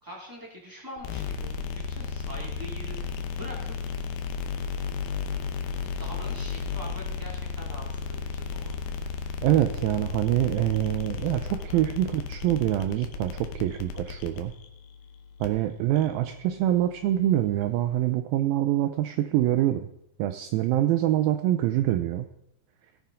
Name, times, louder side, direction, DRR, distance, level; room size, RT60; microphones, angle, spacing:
voice 1, 0.0-3.0 3.4-3.9 5.8-8.8 11.5-11.8, equal, 10° right, -3 dB, 1.0 m, -43 dB
sound 1, 1.0-18.0, left 5 dB, 85° left, 3.0 m, -35 dB
voice 2, 9.4-14.5 15.4-19.9 20.2-22.3, right 13 dB, 85° right, 8 dB, 2.1 m, -25 dB
17.5 x 7.1 x 3.7 m, 0.79 s
omnidirectional pair, 4.6 m